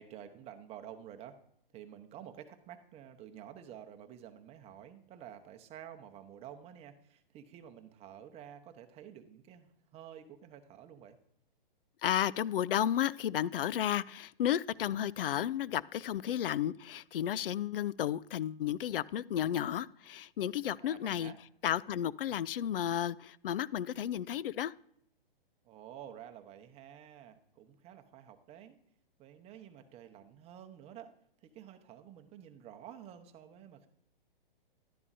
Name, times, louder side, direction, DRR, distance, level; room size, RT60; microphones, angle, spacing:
voice 1, 0.0-1.4 1.7-11.2 20.8-21.4 25.6-28.8 29.2-31.1 31.4-33.9, right 10 dB, 20° right, 7 dB, 0.9 m, -50 dB
voice 2, 12.0-21.3 21.6-24.7, left 10 dB, 70° left, 20 dB, 0.5 m, -33 dB
11.5 x 10.5 x 2.7 m, 0.72 s
hypercardioid pair, 130°, 29 cm